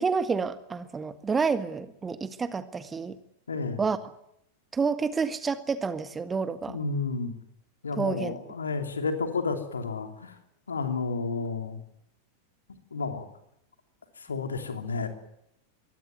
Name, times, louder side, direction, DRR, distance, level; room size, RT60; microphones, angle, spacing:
voice 1, 0.0-3.2 3.8-4.0 4.7-6.8 8.0-8.4, right 5 dB, 15° right, 12 dB, 1.5 m, -29 dB
voice 2, 3.5-3.8 6.7-7.3 7.8-10.4 10.7-11.8 12.9-13.2 14.2-15.1, left 4 dB, 75° left, 6 dB, 3.1 m, -31 dB
23.5 x 16.5 x 9.4 m, 0.78 s
figure-of-eight pair, 90°, 0 cm